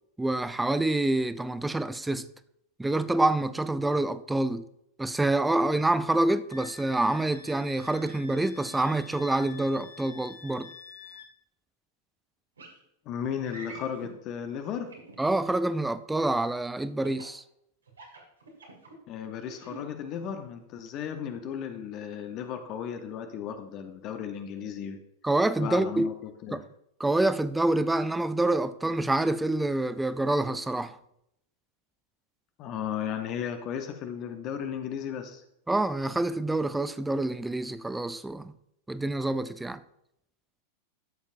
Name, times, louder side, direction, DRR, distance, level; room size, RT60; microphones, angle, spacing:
voice 1, 0.2-2.3 2.8-4.7 5.0-10.7 15.2-17.4 25.2-26.1 26.5-26.6 27.0-31.0 35.7-38.5 38.9-39.8, right 2 dB, 5° right, 0.4 m, -27 dB
Wind instrument woodwind instrument, 6.5-11.3, left 5 dB, 65° left, 1.7 m, -48 dB
sound 1, 12.6-12.8 13.4-14.1 14.9-15.5 17.0-17.4 17.9-18.9 19.4-19.8, right 3 dB, 70° right, 2.2 m, -46 dB
voice 2, 13.0-14.9 19.1-25.0 25.6-26.6 32.6-35.4, left 8 dB, 35° left, 0.8 m, -35 dB
12.5 x 7.2 x 2.6 m
figure-of-eight pair, 90°, 0 cm